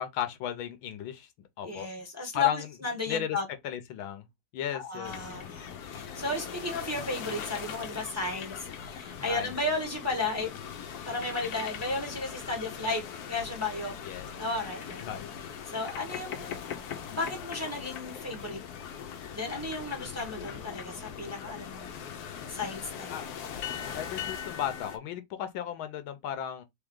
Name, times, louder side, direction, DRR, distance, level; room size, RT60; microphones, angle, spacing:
voice 1, 0.0-1.9 2.3-2.7 3.1-3.4 3.6-4.3 4.5-5.2 9.3-9.5 14.0-14.3 15.0-15.3 20.0-20.1 23.1-23.4 23.9-26.6, left 9 dB, 75° left, 1.5 m, -35 dB
voice 2, 1.6-3.4 4.7-10.5 11.0-13.0 13.3-15.0 15.7-16.5 17.1-18.6 19.3-22.0 22.5-23.2, left 3 dB, 10° right, 1.0 m, -34 dB
sound 1, 5.0-25.0, left 8 dB, 60° left, 1.1 m, -40 dB
3.8 x 3.5 x 3.6 m
omnidirectional pair, 2.2 m